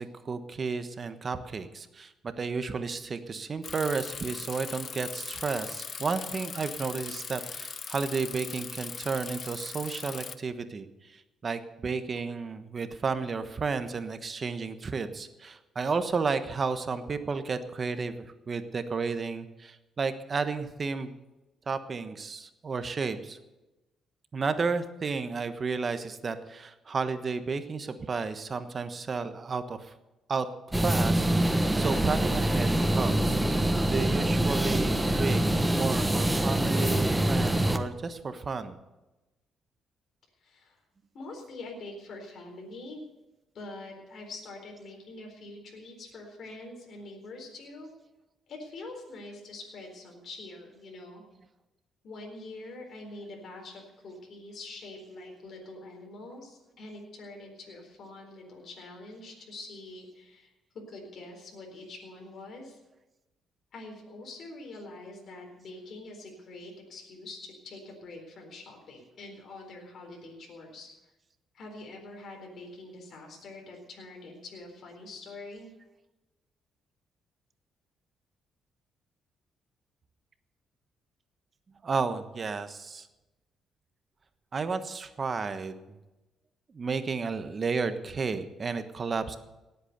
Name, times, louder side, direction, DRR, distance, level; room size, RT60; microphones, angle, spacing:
voice 1, 0.0-10.9 11.4-21.1 21.7-23.4 24.3-29.9 30.3-35.4 35.7-38.8 81.8-83.1 84.5-85.8 86.7-89.4, right 4 dB, 40° right, 10 dB, 1.2 m, -32 dB
Bicycle, 3.6-10.3, left 5 dB, 45° left, 0.8 m, -40 dB
sound 1, 30.7-37.8, right 1 dB, 10° right, 1.1 m, -25 dB
voice 2, 40.4-40.8 41.1-43.0 43.5-47.9 48.5-51.2 52.0-62.8 63.7-70.9 71.5-75.7, left 2 dB, 60° left, 1 dB, 4.1 m, -45 dB
18.5 x 8.3 x 6.7 m, 1.0 s
cardioid pair, 90°, 0 cm